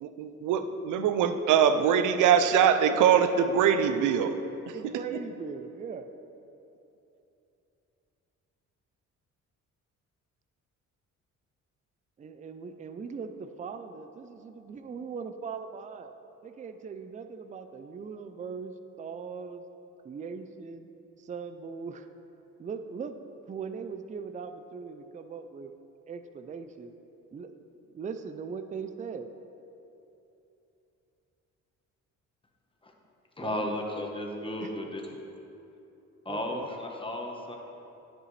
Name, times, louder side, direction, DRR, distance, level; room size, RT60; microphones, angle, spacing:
voice 1, 0.0-4.4 4.7-5.2, right 8 dB, 80° right, 9 dB, 0.6 m, -23 dB
voice 2, 4.7-6.1 12.2-16.1 16.4-19.6 20.0-20.9 21.2-22.1 22.6-23.2 23.5-25.7 26.1-26.9 27.3-27.5 27.9-29.3 33.4-33.7 34.6-34.7 36.3-36.7, right 5 dB, 25° right, 8 dB, 0.4 m, -40 dB
voice 3, 33.4-35.0 36.2-37.6, left 1 dB, 15° left, 1 dB, 1.1 m, -34 dB
9.9 x 7.6 x 3.3 m, 2.9 s
cardioid pair, 90°, 30 cm